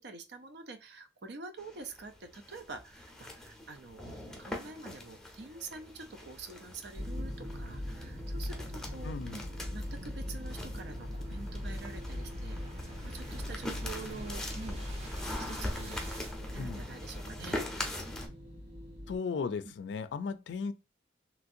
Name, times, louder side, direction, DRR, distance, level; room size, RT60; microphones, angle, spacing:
voice 1, 0.0-4.1 4.4-9.4 9.7-14.8 15.4-16.0 16.4-17.7 19.6-19.8, right 3 dB, 70° right, 0.6 m, -46 dB
sound 1, 1.6-18.3, left 1 dB, 5° left, 0.7 m, -43 dB
sound 2, 5.2-16.4, right 1 dB, 40° right, 0.8 m, -52 dB
sound 3, 6.9-19.2, left 1 dB, 90° right, 1.2 m, -41 dB
voice 2, 9.0-9.4 16.6-16.8 19.1-20.7, left 5 dB, 75° left, 0.4 m, -36 dB
3.1 x 2.6 x 2.5 m
head